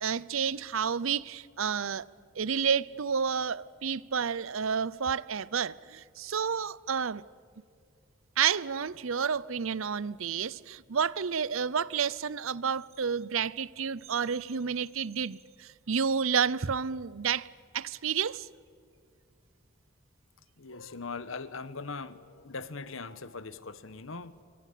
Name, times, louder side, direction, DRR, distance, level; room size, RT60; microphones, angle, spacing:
voice 1, 0.0-2.1 2.3-7.2 8.4-17.5 17.7-18.5, right 6 dB, 80° right, 0.7 m, -30 dB
voice 2, 20.6-24.4, left 4 dB, 75° left, 1.2 m, -40 dB
26.5 x 24.5 x 8.5 m
head